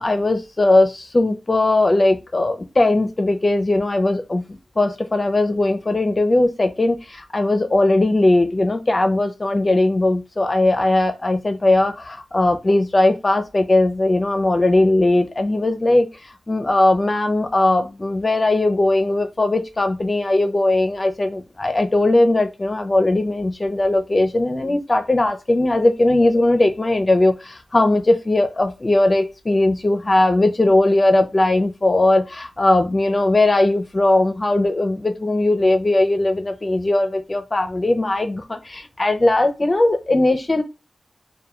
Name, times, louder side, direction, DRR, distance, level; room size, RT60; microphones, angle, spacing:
voice 1, 0.0-40.6, left 2 dB, 40° left, 0.6 m, -19 dB
2.3 x 2.2 x 3.0 m
cardioid pair, 40°, 0 cm